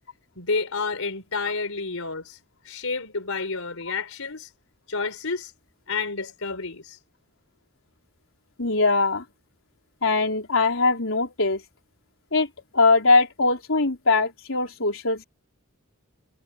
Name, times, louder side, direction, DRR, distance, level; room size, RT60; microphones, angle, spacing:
voice 1, 0.4-2.4 2.6-4.5 4.9-5.5 5.9-7.0, left 4 dB, 85° left, 4.1 m, -30 dB
voice 2, 8.6-9.2 10.0-11.6 12.3-12.5 12.7-15.2, left 3 dB, 65° left, 4.5 m, -21 dB
head